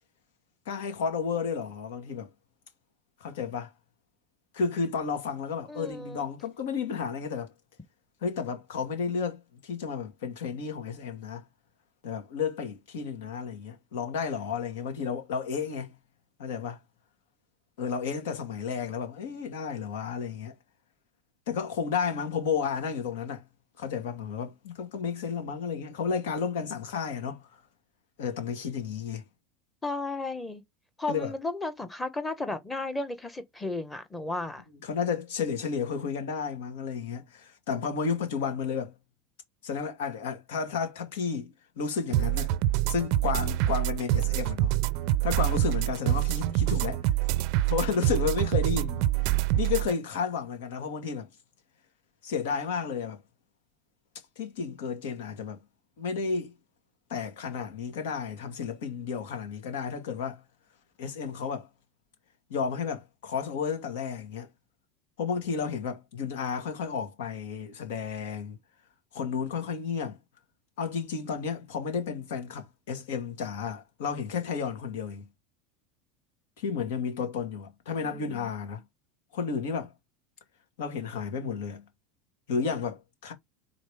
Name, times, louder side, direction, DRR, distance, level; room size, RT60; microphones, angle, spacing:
voice 1, 0.7-2.3 3.2-3.7 4.5-7.5 8.2-11.4 12.0-15.9 16.4-16.8 17.8-20.5 21.5-23.4 23.8-27.5 28.2-29.2 31.1-31.3 34.8-38.9 39.6-42.5 42.9-44.7 45.2-47.0 47.7-49.0 49.6-51.3 52.2-53.2 54.4-55.6 56.0-56.5 57.1-60.4 61.0-61.7 62.5-64.5 65.2-68.6 69.1-70.2 70.8-75.2 76.6-78.8 79.3-79.9 80.8-81.8 82.5-83.3, left 6 dB, 85° left, 2.2 m, -32 dB
voice 2, 5.7-6.3 29.8-30.6 31.0-34.6 78.0-78.5, left 2 dB, 10° left, 1.1 m, -34 dB
sound 1, 42.1-49.9, right 14 dB, 50° right, 0.4 m, -26 dB
5.2 x 3.8 x 4.9 m
supercardioid pair, 165°, 0 cm